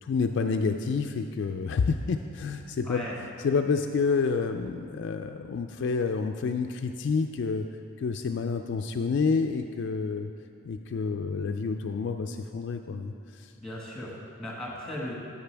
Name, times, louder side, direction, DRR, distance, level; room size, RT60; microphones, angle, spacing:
voice 1, 0.0-3.1 3.4-7.7 8.0-10.3 10.6-13.5, left 4 dB, 55° left, 6 dB, 0.3 m, -29 dB
voice 2, 13.6-15.2, left 1 dB, 5° left, -4 dB, 1.5 m, -37 dB
15.0 x 5.5 x 3.4 m, 2.6 s
head